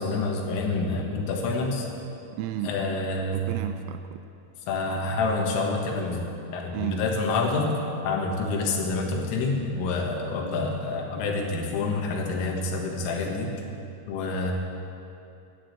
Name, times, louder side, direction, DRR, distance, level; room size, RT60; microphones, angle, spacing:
voice 1, 0.0-1.9 2.6-3.5 4.7-6.3 6.5-7.7 8.0-13.5 14.1-14.5, left 3 dB, 85° left, 1 dB, 4.2 m, -27 dB
voice 2, 2.3-2.8 3.3-4.2 6.7-7.0, right 12 dB, 90° right, 8 dB, 3.2 m, -33 dB
12.5 x 9.9 x 8.7 m, 2.6 s
omnidirectional pair, 5.7 m